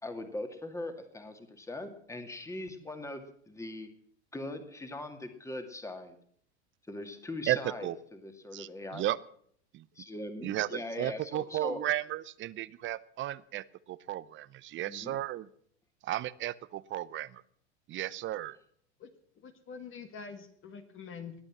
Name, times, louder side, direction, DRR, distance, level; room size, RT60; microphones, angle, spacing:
voice 1, 0.0-3.9 4.3-6.2 6.9-7.9 8.2-9.1 10.0-11.9 14.9-15.2, left 2 dB, 10° left, 6 dB, 2.3 m, -40 dB
voice 2, 7.5-8.0 8.5-9.2 9.7-9.8 10.4-15.5 16.0-17.4 17.9-18.6, right 14 dB, 35° right, 19 dB, 0.7 m, -34 dB
voice 3, 19.4-21.3, left 6 dB, 35° left, 7 dB, 1.9 m, -45 dB
20.5 x 8.9 x 7.4 m, 0.63 s
hypercardioid pair, 95°, 34 cm